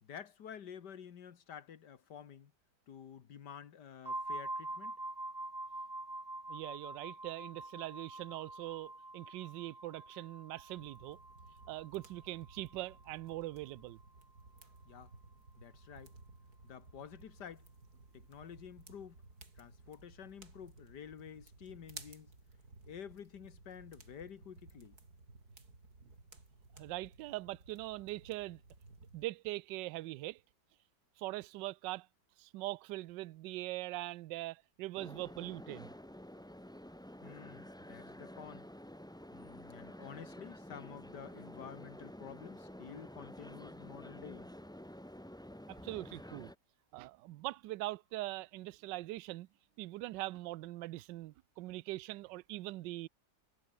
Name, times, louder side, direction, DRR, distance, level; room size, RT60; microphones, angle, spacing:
voice 1, 0.0-2.5 2.9-4.9 14.9-15.1 15.6-16.1 16.6-17.7 18.1-19.2 19.6-22.3 22.9-25.0 37.2-38.7 39.3-44.5, left 8 dB, 65° left, 1.9 m, -50 dB
sound 1, 4.1-13.7, right 2 dB, 10° right, 1.7 m, -46 dB
voice 2, 6.5-11.2 11.7-14.0 26.8-28.6 29.1-30.4 31.2-32.1 32.4-35.9 45.8-46.5 46.9-49.5 49.8-53.1, right 18 dB, 75° right, 1.2 m, -42 dB
sound 2, 10.7-29.3, right 3 dB, 55° right, 5.2 m, -57 dB
sound 3, 35.0-46.6, equal, 5° left, 0.7 m, -50 dB
omnidirectional pair, 2.0 m